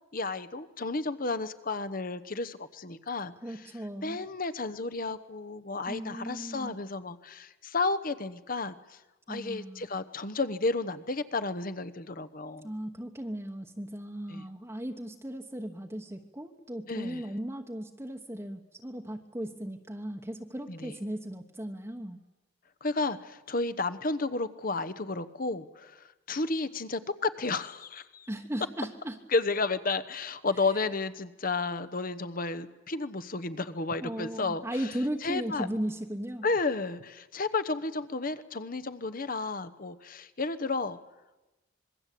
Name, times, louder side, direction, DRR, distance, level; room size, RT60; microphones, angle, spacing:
voice 1, 0.1-3.3 4.0-9.0 9.3-12.7 14.3-14.4 16.9-17.2 20.7-20.9 22.8-28.3 29.3-34.6 35.2-35.7 36.4-41.0, left 3 dB, 45° left, 13 dB, 1.0 m, -32 dB
voice 2, 3.4-4.2 5.9-6.8 9.3-9.9 12.6-22.2 28.3-29.2 34.0-36.5, right 1 dB, 15° right, 2 dB, 1.2 m, -37 dB
26.0 x 21.5 x 8.5 m, 1.1 s
head